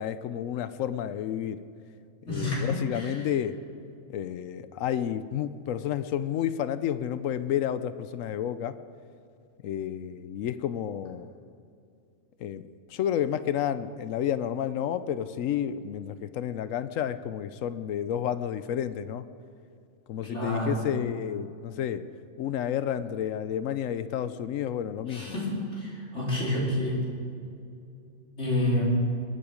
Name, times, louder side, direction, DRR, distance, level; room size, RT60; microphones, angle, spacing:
voice 1, 0.0-1.7 2.3-3.6 4.1-8.8 9.6-11.3 12.4-12.6 12.9-19.2 20.1-22.1 22.4-25.4, left 10 dB, 85° left, 13 dB, 1.0 m, -31 dB
voice 2, 2.2-3.3 20.3-20.9 25.1-27.0 28.4-28.8, left 1 dB, 60° left, -6 dB, 4.7 m, -29 dB
22.0 x 10.0 x 5.1 m, 2.5 s
omnidirectional pair, 1.4 m